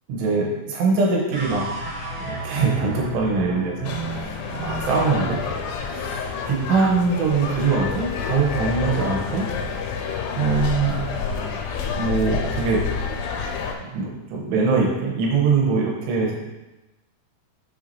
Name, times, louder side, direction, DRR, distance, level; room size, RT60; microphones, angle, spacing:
voice 1, 0.1-1.7 2.2-4.3 4.5-5.4 6.5-9.5 10.4-11.0 12.0-12.8 13.8-16.4, right 4 dB, 85° right, -2 dB, 3.3 m, -22 dB
sound 1, 1.3-7.7, right 1 dB, 65° right, 1.8 m, -34 dB
sound 2, 3.8-13.8, left 5 dB, 80° left, 2.1 m, -28 dB
6.9 x 6.2 x 2.8 m, 1.0 s
omnidirectional pair, 4.9 m